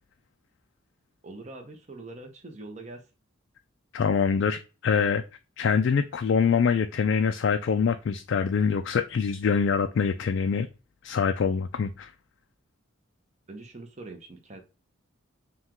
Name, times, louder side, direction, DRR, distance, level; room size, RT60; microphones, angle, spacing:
voice 1, 1.2-3.0 13.5-14.6, right 2 dB, 35° right, 0.8 m, -43 dB
voice 2, 3.9-5.2 5.6-10.7 11.0-12.1, left 6 dB, 55° left, 0.3 m, -24 dB
5.6 x 2.3 x 2.9 m
head